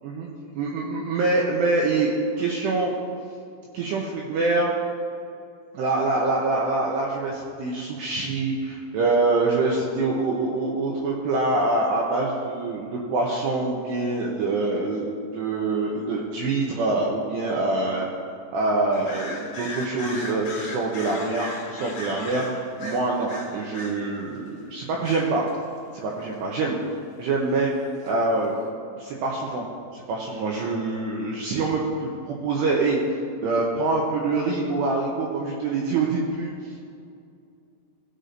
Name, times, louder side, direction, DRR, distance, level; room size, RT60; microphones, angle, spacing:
voice 1, 0.6-2.1 2.4-2.9 3.7-4.7 5.7-18.1 18.5-25.4 25.9-26.8 27.2-27.7 28.0-28.5 28.8-29.7 29.9-33.0 33.4-36.5, right 3 dB, 85° right, -2 dB, 2.4 m, -25 dB
sound 1, 18.9-24.0 25.0-25.6 28.0-28.1, left 1 dB, 85° left, 1.4 m, -37 dB
19.5 x 6.7 x 2.6 m, 2.4 s
omnidirectional pair, 5.9 m